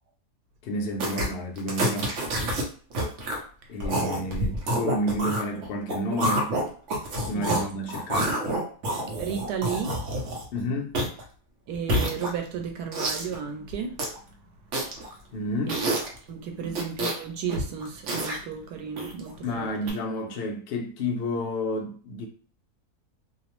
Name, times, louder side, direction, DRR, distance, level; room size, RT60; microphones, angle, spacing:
voice 1, 0.6-2.1 3.7-6.5 7.1-8.4 10.5-11.0 15.3-15.8 16.6-16.7 19.4-22.3, left 1 dB, 70° left, 0.6 m, -30 dB
sound 1, 1.0-1.3 1.6-2.6 2.9-3.4 3.8-7.6 7.9-10.6 10.9-11.2 11.7-12.6 12.9-13.4 13.7-14.2 14.7-15.1 15.7-16.2 16.7-17.2 17.5-18.4 19.0-19.3 19.9-20.0, right 1 dB, 60° right, 0.9 m, -28 dB
voice 2, 9.2-10.0 11.7-14.4 15.7-19.7, right 7 dB, 90° right, 1.2 m, -34 dB
2.7 x 2.0 x 2.9 m
omnidirectional pair, 1.6 m